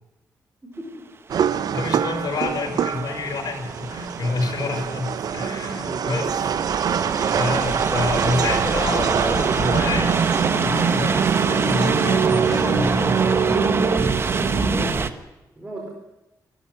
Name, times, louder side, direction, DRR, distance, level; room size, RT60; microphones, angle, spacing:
voice 1, 0.6-1.0 5.7-6.5 14.7-15.1 15.6-15.9, right 1 dB, 15° right, 0 dB, 4.2 m, -36 dB
sound 1, 1.3-14.9, right 8 dB, 65° right, 0.9 m, -24 dB
voice 2, 1.5-6.3 7.3-10.2 10.6-13.7, left 3 dB, 65° left, 2 dB, 5.9 m, -28 dB
sound 2, 1.5-15.1, right 4 dB, 35° right, 1.3 m, -26 dB
sound 3, 9.9-14.9, left 5 dB, 50° left, 2.1 m, -32 dB
27.0 x 13.0 x 9.7 m, 1.0 s
wide cardioid pair, 160°, 7 cm